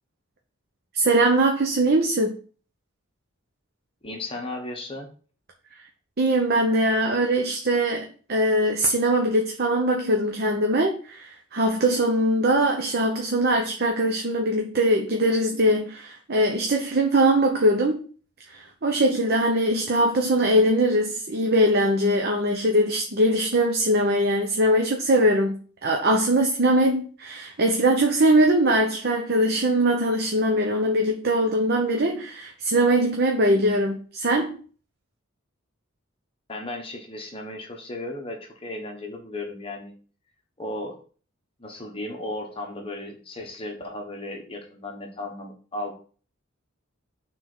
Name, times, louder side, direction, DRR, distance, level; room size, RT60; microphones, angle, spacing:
voice 1, 0.9-2.3 6.2-18.0 18.5-25.6 25.8-34.6, right 1 dB, 50° right, 0.9 m, -21 dB
voice 2, 4.0-5.1 36.5-39.9 40.6-41.0 41.6-45.9, left 1 dB, 25° left, 1.1 m, -35 dB
5.9 x 3.9 x 6.0 m
head